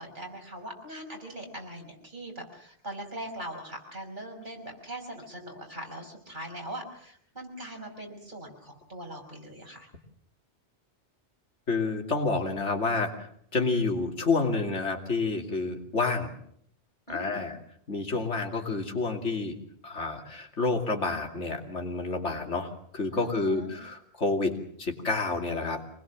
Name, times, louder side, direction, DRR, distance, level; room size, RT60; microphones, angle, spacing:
voice 1, 0.0-9.9 17.1-17.4 23.1-23.7, right 1 dB, 45° right, 1 dB, 5.8 m, -41 dB
voice 2, 11.7-13.1 13.5-16.3 17.1-17.6 17.9-19.5 19.8-25.8, left 3 dB, 90° left, 4 dB, 3.0 m, -29 dB
26.0 x 20.0 x 7.4 m, 0.68 s
omnidirectional pair, 1.2 m